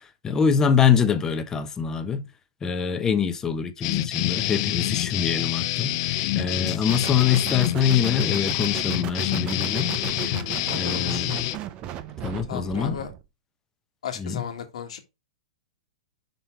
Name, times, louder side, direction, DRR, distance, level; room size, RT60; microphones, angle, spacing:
voice 1, 0.2-2.3 2.6-9.9 10.2-10.3 10.7-11.3 12.2-13.0 14.2-14.4, left 7 dB, 15° left, 0.8 m, -24 dB
sound 1, 3.8-11.6, left 16 dB, 45° left, 0.5 m, -27 dB
voice 2, 6.3-6.9 10.7-11.3 12.5-13.1 14.0-15.0, left 8 dB, 75° left, 1.6 m, -35 dB
sound 2, 6.9-13.2, right 11 dB, 30° right, 0.7 m, -36 dB
5.4 x 4.4 x 4.5 m
hypercardioid pair, 140°, 3 cm